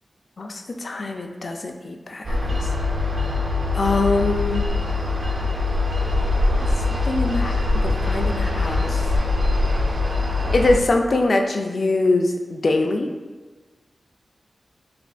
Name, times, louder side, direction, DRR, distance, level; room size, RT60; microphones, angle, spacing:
voice 1, 0.4-2.6 3.7-4.7 6.6-9.0 10.5-13.2, left 2 dB, 60° left, 4 dB, 0.3 m, -23 dB
Distant Highway from Train Platform, 2.2-10.8, left 2 dB, 50° right, 0.4 m, -22 dB
4.3 x 2.4 x 2.3 m, 1.3 s
wide cardioid pair, 70°, 0 cm